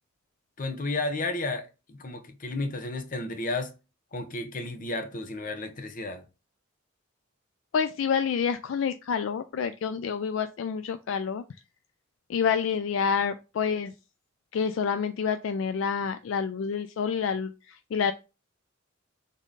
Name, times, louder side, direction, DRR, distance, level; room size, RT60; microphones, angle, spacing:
voice 1, 0.6-3.7 4.1-6.2, left 2 dB, 40° left, 0.8 m, -32 dB
voice 2, 7.7-11.4 12.3-13.9 14.5-18.1, left 6 dB, 70° left, 0.3 m, -28 dB
3.6 x 3.6 x 3.9 m
head